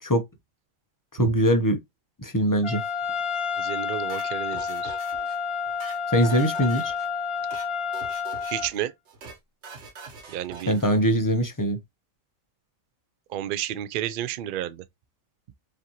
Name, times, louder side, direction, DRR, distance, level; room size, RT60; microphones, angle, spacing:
voice 1, 1.1-1.8 2.2-2.8 6.1-6.9 10.7-11.8, equal, 25° left, 0.4 m, -22 dB
Trumpet, 2.6-8.7, left 6 dB, 45° left, 1.5 m, -30 dB
voice 2, 3.6-4.9 8.5-8.9 10.3-10.7 13.3-14.8, right 12 dB, 70° right, 0.5 m, -31 dB
sound 1, 4.1-5.4 5.7-7.1 7.4-7.7 7.9-8.8 9.1-9.4 9.6-10.9, right 4 dB, 55° right, 1.2 m, -44 dB
5.1 x 2.7 x 2.9 m
omnidirectional pair, 1.4 m